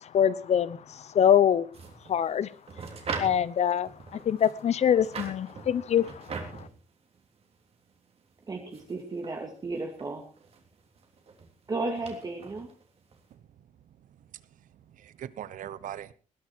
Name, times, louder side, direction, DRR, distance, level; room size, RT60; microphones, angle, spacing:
voice 1, 0.1-0.8 1.1-1.6 2.1-2.5 3.2-3.9 4.3-6.1, left 9 dB, 55° left, 0.9 m, -23 dB
sound 1, 1.7-13.3, right 4 dB, 50° right, 3.5 m, -42 dB
voice 2, 8.5-10.2 11.7-12.7, right 3 dB, 30° right, 2.3 m, -34 dB
voice 3, 14.0-14.4 14.9-16.1, right 10 dB, 85° right, 1.0 m, -41 dB
20.0 x 11.0 x 4.6 m
wide cardioid pair, 155°, 13 cm